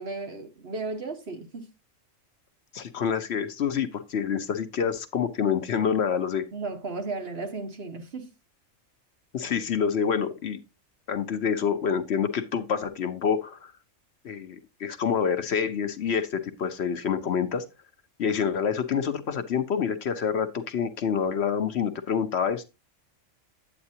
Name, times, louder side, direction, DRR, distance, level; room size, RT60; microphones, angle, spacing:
voice 1, 0.0-1.7 6.5-8.3, right 3 dB, 55° right, 1.4 m, -35 dB
voice 2, 2.7-6.5 9.3-10.6 11.1-13.7 14.2-17.6 18.2-22.6, left 7 dB, 60° left, 1.0 m, -27 dB
8.8 x 8.5 x 2.7 m
omnidirectional pair, 1.3 m